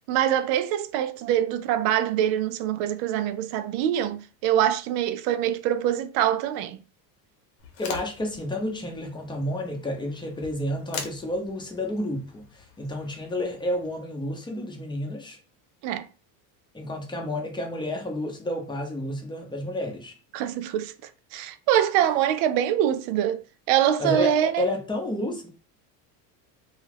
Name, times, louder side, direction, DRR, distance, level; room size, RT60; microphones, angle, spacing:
voice 1, 0.1-6.8 15.8-16.1 20.3-20.9 21.3-23.4 23.7-24.7, right 11 dB, 70° right, 0.5 m, -24 dB
sound 1, 7.6-14.0, left 5 dB, 75° left, 0.9 m, -43 dB
voice 2, 7.8-15.4 16.7-20.1 24.0-25.5, left 1 dB, 10° left, 0.6 m, -30 dB
2.3 x 2.3 x 3.2 m
supercardioid pair, 110°, 48 cm